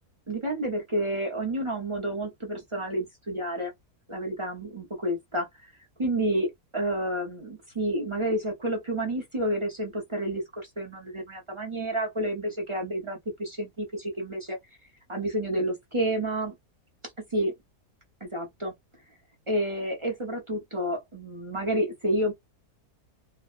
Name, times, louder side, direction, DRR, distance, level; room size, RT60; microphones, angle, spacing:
voice 1, 0.3-3.7 4.1-5.7 6.0-14.6 15.1-16.5 17.3-17.5 18.2-18.7 19.5-22.3, right 1 dB, 35° right, 0.5 m, -30 dB
3.4 x 2.2 x 2.4 m
omnidirectional pair, 1.7 m